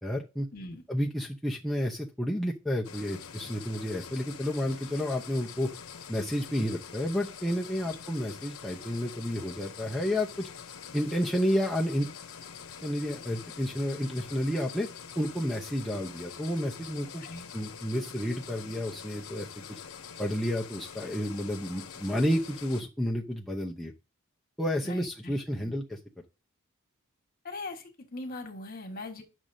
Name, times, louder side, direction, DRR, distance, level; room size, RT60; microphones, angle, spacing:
voice 1, 0.0-0.5 0.9-5.7 6.1-10.5 10.9-12.1 12.8-14.9 15.2-17.2 17.5-19.5 20.2-23.9 24.6-26.0, equal, ahead, -3 dB, 0.7 m, -31 dB
voice 2, 0.5-0.8 7.9-8.0 17.2-17.5 24.8-25.8 27.4-29.2, left 2 dB, 45° left, 4 dB, 1.6 m, -41 dB
sound 1, 2.8-22.8, left 7 dB, 85° left, 0.8 m, -45 dB
10.5 x 6.3 x 2.7 m, 0.30 s
head